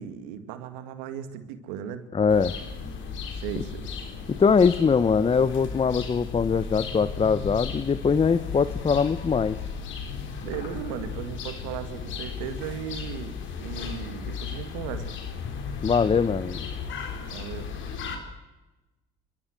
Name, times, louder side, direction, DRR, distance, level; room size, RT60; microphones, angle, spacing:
voice 1, 0.0-2.0 3.4-3.9 10.4-15.1 17.3-17.7, right 9 dB, 90° right, 10 dB, 2.1 m, -36 dB
voice 2, 2.1-2.5 4.3-9.6 15.8-16.6, left 5 dB, 25° left, 14 dB, 1.0 m, -22 dB
sound 1, 2.3-18.2, left 6 dB, 65° left, 4.4 m, -35 dB
29.5 x 13.0 x 8.0 m, 1.0 s
supercardioid pair, 75°, 21 cm